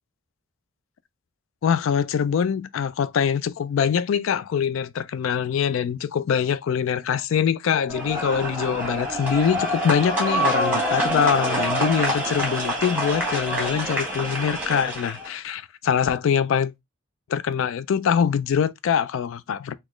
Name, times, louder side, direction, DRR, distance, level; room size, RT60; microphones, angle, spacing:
voice 1, 1.6-16.7 17.3-19.7, left 7 dB, 80° left, 0.3 m, -23 dB
sound 1, 7.9-15.3, right 1 dB, 10° right, 1.4 m, -26 dB
4.1 x 2.4 x 3.0 m
head